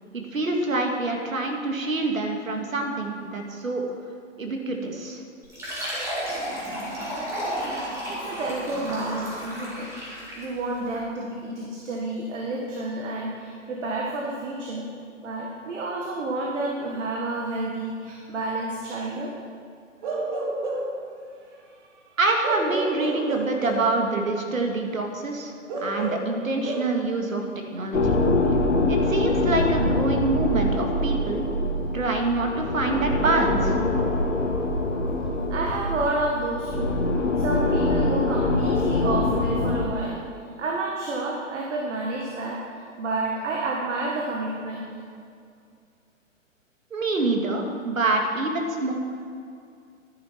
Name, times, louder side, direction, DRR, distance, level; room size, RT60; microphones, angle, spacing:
voice 1, 0.1-3.9 4.4-5.2 22.2-25.5 25.8-27.4 27.7-28.2 28.9-31.4 31.9-33.8 46.9-48.9, right 2 dB, 85° right, 2 dB, 2.2 m, -26 dB
Fill (with liquid), 5.4-10.6, equal, 5° right, 2.1 m, -32 dB
voice 2, 8.1-9.9 10.4-14.9 15.2-19.3 35.5-37.0 37.4-40.2 40.6-42.6 43.0-44.9, right 2 dB, 65° right, -2 dB, 1.9 m, -30 dB
Bark / Livestock farm animals working animals, 20.0-21.0 22.4-23.9 25.7-26.8, right 2 dB, 40° right, 2.0 m, -30 dB
sound 1, 27.9-39.9, left 2 dB, 65° left, 1.9 m, -24 dB
12.5 x 10.5 x 4.6 m, 2.3 s
hypercardioid pair, 145°, 39 cm